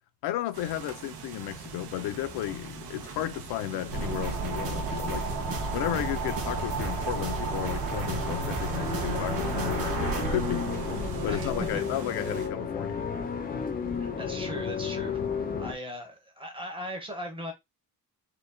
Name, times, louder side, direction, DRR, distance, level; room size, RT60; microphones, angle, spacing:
voice 1, 0.2-5.3 5.7-10.7 11.2-13.0, left 13 dB, 90° left, 0.5 m, -33 dB
sound 1, 0.5-12.5, right 7 dB, 90° right, 0.9 m, -44 dB
sound 2, 1.6-15.7, left 6 dB, 25° left, 0.4 m, -35 dB
sound 3, 3.9-11.8, right 4 dB, 55° right, 1.0 m, -32 dB
voice 2, 14.0-17.5, equal, 15° right, 0.7 m, -39 dB
4.5 x 2.2 x 2.5 m
cardioid pair, 175°, 38 cm